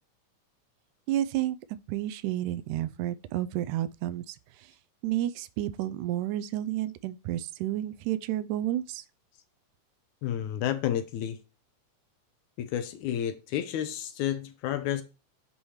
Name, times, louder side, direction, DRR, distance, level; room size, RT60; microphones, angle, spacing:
voice 1, 1.1-1.6 1.9-4.7 5.0-9.0, right 13 dB, 85° right, 2.1 m, -31 dB
voice 2, 10.2-11.4 12.6-15.0, left 10 dB, 80° left, 2.1 m, -31 dB
8.6 x 3.1 x 5.5 m
omnidirectional pair, 3.5 m